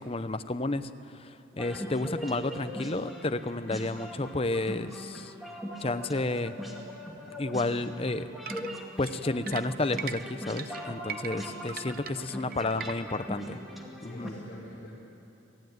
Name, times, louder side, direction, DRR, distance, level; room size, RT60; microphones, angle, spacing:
voice 1, 0.0-5.3 5.8-6.5 7.4-8.3 9.0-13.6 14.0-14.3, left 2 dB, 30° left, 10 dB, 0.7 m, -31 dB
sound 1, 1.5-14.3, equal, ahead, 2.3 m, -41 dB
sound 2, 8.5-13.2, right 8 dB, 45° right, 0.7 m, -40 dB
voice 2, 14.0-14.9, left 1 dB, 45° left, -6 dB, 4.2 m, -47 dB
26.5 x 16.0 x 9.5 m, 2.8 s
head